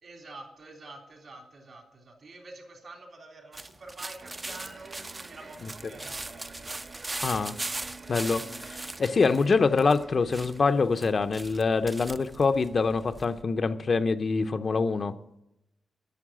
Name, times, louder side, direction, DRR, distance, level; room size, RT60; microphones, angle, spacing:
voice 1, 0.0-6.6, right 2 dB, 55° right, 2 dB, 3.4 m, -47 dB
sound 1, 3.5-13.4, right 2 dB, 20° right, 0.5 m, -40 dB
sound 2, 4.2-10.9, right 3 dB, 40° right, 1.2 m, -48 dB
voice 2, 7.2-7.6 8.1-15.1, left 4 dB, 45° left, 9 dB, 0.6 m, -25 dB
11.0 x 6.9 x 8.8 m, 0.84 s
cardioid pair, 100°, 0 cm